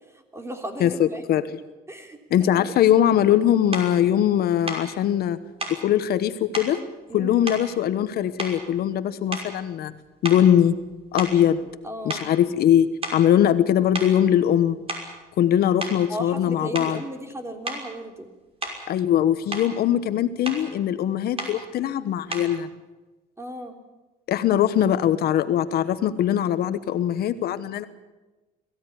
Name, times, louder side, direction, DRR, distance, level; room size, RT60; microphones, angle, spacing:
voice 1, 0.1-1.2 1.9-2.7 7.1-7.4 11.8-12.2 16.1-18.3 23.4-23.7, equal, 15° right, 5 dB, 3.4 m, -36 dB
voice 2, 0.8-1.4 2.3-5.4 5.7-6.8 7.1-9.9 10.2-10.7 11.1-11.6 12.0-14.8 15.4-17.0 18.9-22.7 24.3-27.8, left 10 dB, 65° left, 12 dB, 1.2 m, -21 dB
sound 1, 3.7-3.9 4.7-4.9 5.6-5.8 6.5-6.8 7.5-8.1 8.4-8.8 9.3-9.6 10.2-11.8 12.1-12.3 13.0-13.3 13.9-14.2 14.7-15.2 15.8-16.0 16.7-17.0 17.6-17.9 18.6-18.9 19.3-19.7 20.4-20.7 21.4-21.6 22.3-22.6, right 2 dB, 35° right, 5.8 m, -33 dB
22.0 x 16.0 x 9.9 m, 1.1 s
cardioid pair, 110°, 17 cm